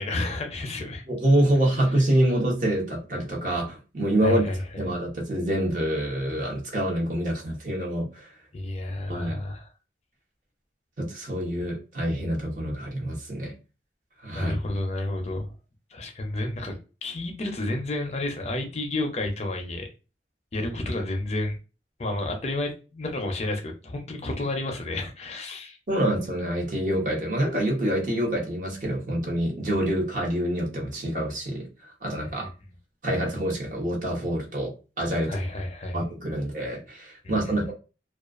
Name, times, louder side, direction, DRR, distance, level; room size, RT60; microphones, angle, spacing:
voice 1, 0.0-1.0 4.2-4.6 8.5-9.6 14.3-15.5 15.9-16.7 17.0-19.9 20.5-21.6 22.0-25.8 35.3-36.0 37.2-37.3, left 2 dB, 40° left, 0.5 m, -30 dB
voice 2, 1.1-4.4 4.8-8.4 9.1-9.4 11.0-13.5 14.2-14.6 25.9-32.5 33.0-35.4 35.9-37.7, right 1 dB, 45° right, 0.9 m, -26 dB
2.3 x 2.3 x 2.4 m
head